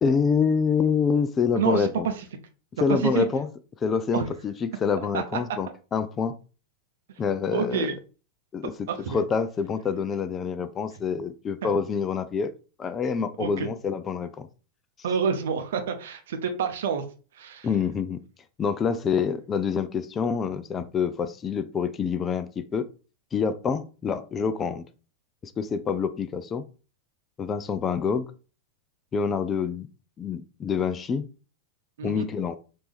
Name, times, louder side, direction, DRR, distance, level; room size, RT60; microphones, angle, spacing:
voice 1, 0.0-2.1 2.8-3.5 3.8-6.3 7.2-7.9 8.5-12.5 12.8-14.5 17.6-18.2 18.6-22.9 23.3-24.8 25.6-26.7 27.4-28.3 29.1-29.9 30.2-31.3 32.0-32.6, left 6 dB, 25° left, 0.4 m, -26 dB
voice 2, 1.5-2.1 2.9-3.2 4.1-4.3 5.1-5.4 7.5-8.0 8.9-9.2 11.6-11.7 13.4-13.7 15.0-17.0 17.3-17.7 32.0-32.3, right 7 dB, 60° right, 0.7 m, -28 dB
4.3 x 2.6 x 3.5 m
figure-of-eight pair, 90°, 0 cm